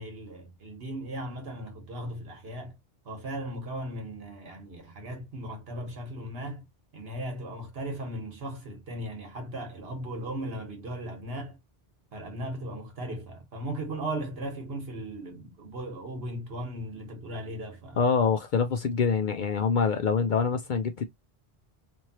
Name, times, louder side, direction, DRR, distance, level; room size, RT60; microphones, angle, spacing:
voice 1, 0.0-2.8 3.0-6.7 6.9-11.6 12.1-18.0, right 1 dB, 65° right, 1.3 m, -37 dB
voice 2, 18.0-21.0, left 5 dB, 60° left, 0.6 m, -25 dB
3.1 x 2.5 x 2.8 m
omnidirectional pair, 1.1 m